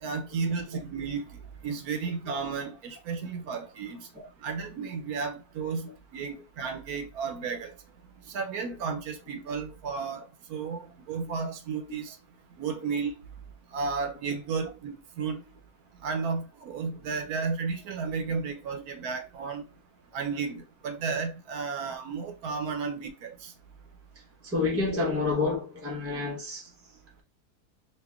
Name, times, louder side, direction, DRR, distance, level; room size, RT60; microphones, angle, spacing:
voice 1, 0.0-1.3 1.6-4.1 4.4-7.7 8.3-10.2 10.5-12.2 12.6-13.1 13.7-15.4 16.0-19.6 20.1-23.5, right 5 dB, 75° right, 1.1 m, -33 dB
voice 2, 24.4-26.7, left 3 dB, 15° right, 0.6 m, -29 dB
4.2 x 2.5 x 2.3 m
omnidirectional pair, 1.7 m